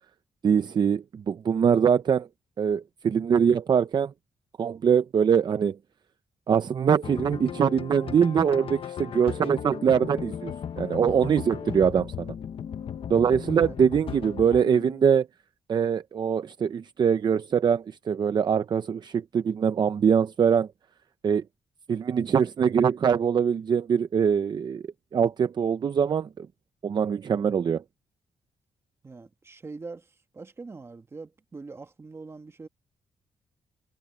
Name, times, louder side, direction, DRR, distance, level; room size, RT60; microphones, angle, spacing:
voice 1, 0.4-2.3 2.6-4.1 4.6-5.8 6.5-12.3 13.1-15.3 15.7-20.7 21.2-21.4 21.9-24.8 25.1-26.5 26.8-27.8, right 7 dB, 40° right, 0.6 m, -23 dB
sound 1, 7.0-15.1, left 8 dB, 55° left, 1.0 m, -36 dB
voice 2, 29.0-30.0 30.3-32.7, right 3 dB, 25° right, 1.4 m, -42 dB
wide cardioid pair, 150°, 11 cm